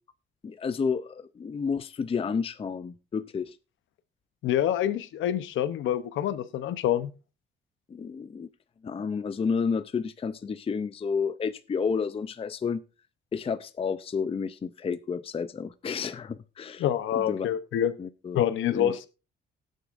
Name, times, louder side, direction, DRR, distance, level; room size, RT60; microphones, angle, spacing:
voice 1, 0.4-3.6 7.9-8.5 8.8-12.8 13.3-16.8 17.1-17.5 18.0-18.4 18.7-19.0, left 5 dB, 30° left, 12 dB, 0.5 m, -31 dB
voice 2, 4.4-7.1 16.8-17.9 18.3-19.1, left 10 dB, 80° left, 12 dB, 0.8 m, -26 dB
18.5 x 6.5 x 2.5 m, 0.31 s
cardioid pair, 90°, 20 cm